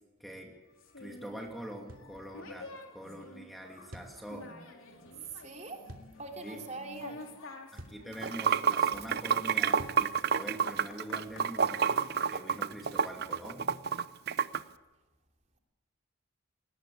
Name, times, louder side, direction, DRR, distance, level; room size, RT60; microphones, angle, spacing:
voice 1, 0.2-0.5 1.0-4.5 6.4-6.6 7.7-12.0 12.3-13.7, equal, ahead, 1 dB, 2.7 m, -44 dB
sound 1, 0.8-12.4, left 2 dB, 85° left, 3.5 m, -51 dB
sound 2, 1.9-2.1 3.9-4.2 5.9-6.1 7.8-8.1 9.8-10.1, equal, 75° right, 2.9 m, -47 dB
voice 2, 5.2-5.8 6.2-7.3, right 3 dB, 35° right, 2 dB, 3.2 m, -42 dB
Water / Sink (filling or washing), 8.1-14.6, right 6 dB, 50° right, 0.6 m, -29 dB
21.0 x 19.5 x 8.6 m, 1.1 s
head